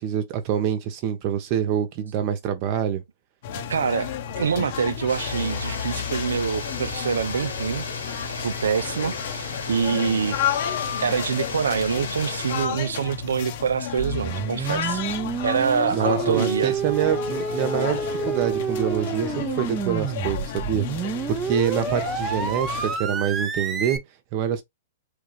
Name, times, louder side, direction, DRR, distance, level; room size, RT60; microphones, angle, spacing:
voice 1, 0.0-3.0 15.9-24.0 24.3-24.6, right 9 dB, 45° right, 0.9 m, -26 dB
sound 1, 3.4-23.0, left 9 dB, 55° left, 0.8 m, -32 dB
voice 2, 3.7-7.9 8.4-10.4 11.0-15.0 15.4-16.7, right 6 dB, 80° right, 0.4 m, -25 dB
sound 2, 5.1-12.7, left 4 dB, 90° left, 1.8 m, -34 dB
sound 3, 14.0-24.0, right 5 dB, 20° right, 0.6 m, -29 dB
3.4 x 2.4 x 3.2 m
hypercardioid pair, 120°, 0 cm